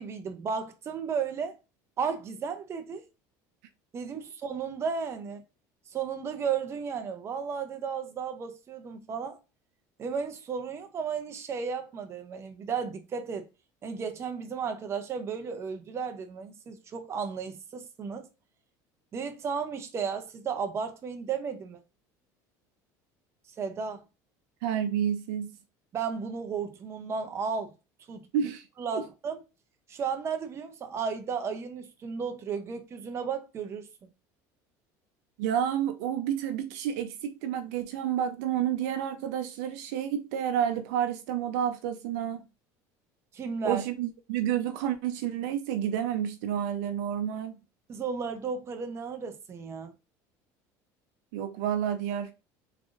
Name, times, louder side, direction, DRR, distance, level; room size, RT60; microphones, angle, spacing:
voice 1, 0.0-1.6 2.0-3.0 3.9-5.4 5.9-9.4 10.0-13.5 13.8-18.3 19.1-21.8 23.6-24.0 25.9-27.7 28.1-28.3 28.8-29.4 29.9-33.9 43.3-43.8 47.9-49.9, right 6 dB, 30° right, 0.7 m, -34 dB
voice 2, 24.6-25.5 28.3-28.6 28.9-29.0 35.4-42.4 43.6-47.6 51.3-52.3, right 9 dB, 85° right, 0.6 m, -30 dB
3.7 x 3.4 x 2.5 m
cardioid pair, 130°, 9 cm